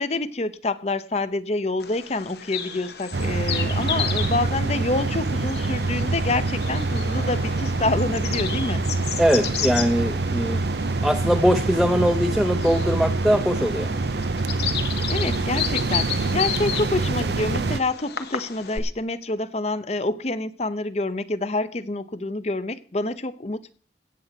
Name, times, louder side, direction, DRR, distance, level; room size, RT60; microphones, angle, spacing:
voice 1, 0.0-8.8 15.1-23.7, left 2 dB, 40° left, 0.8 m, -27 dB
Bird vocalization bird call bird song, 1.8-18.8, left 8 dB, 70° left, 1.4 m, -34 dB
sound 1, 3.1-17.8, right 3 dB, 70° right, 0.6 m, -25 dB
voice 2, 9.2-10.6 11.0-13.9, equal, ahead, 0.6 m, -21 dB
16.0 x 7.8 x 5.9 m
head